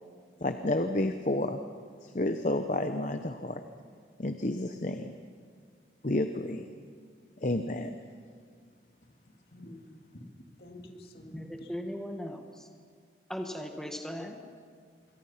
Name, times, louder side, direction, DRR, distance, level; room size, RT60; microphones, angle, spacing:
voice 1, 0.4-1.6 2.0-3.6 4.2-5.2 6.0-6.7 7.4-8.0, left 1 dB, 40° left, 7 dB, 0.8 m, -30 dB
voice 2, 9.5-11.7, left 1 dB, 60° left, 2 dB, 2.5 m, -49 dB
voice 3, 11.3-12.7 13.3-14.4, equal, 5° left, 3 dB, 1.6 m, -38 dB
26.5 x 23.5 x 5.8 m, 2.1 s
head